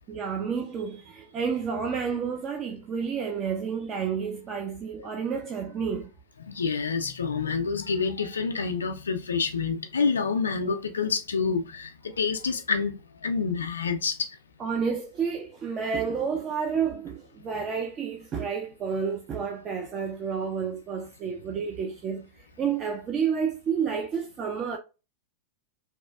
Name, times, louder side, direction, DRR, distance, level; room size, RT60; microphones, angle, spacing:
voice 1, 0.1-6.1 14.6-24.8, right 6 dB, 30° right, 0.4 m, -30 dB
voice 2, 6.4-14.4, left 5 dB, 70° left, 0.3 m, -28 dB
2.9 x 2.3 x 2.2 m
figure-of-eight pair, 90°, 0 cm